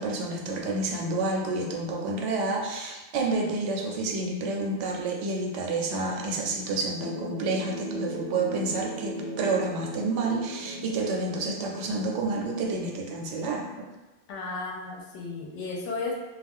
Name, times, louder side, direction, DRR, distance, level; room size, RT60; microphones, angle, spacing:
voice 1, 0.0-13.9, right 3 dB, 85° right, 1 dB, 0.9 m, -29 dB
sound 1, 7.0-13.2, equal, 60° left, 0.8 m, -38 dB
voice 2, 14.3-16.1, left 3 dB, 90° left, -2 dB, 1.0 m, -34 dB
2.3 x 2.1 x 3.5 m, 1.1 s
omnidirectional pair, 1.2 m